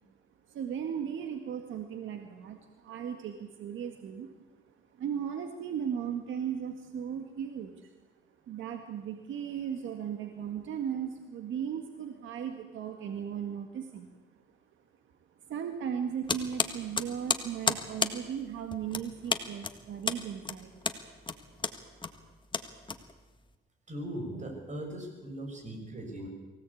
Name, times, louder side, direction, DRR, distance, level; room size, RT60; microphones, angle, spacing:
voice 1, 0.5-7.9 8.4-14.1 15.5-20.8, right 8 dB, 75° right, 5 dB, 1.9 m, -37 dB
sound 1, 16.3-23.5, left 4 dB, 25° left, 1.7 m, -33 dB
voice 2, 23.9-26.3, right 1 dB, 35° right, 4 dB, 6.3 m, -39 dB
23.5 x 17.0 x 8.5 m, 1.2 s
cardioid pair, 90°, 20 cm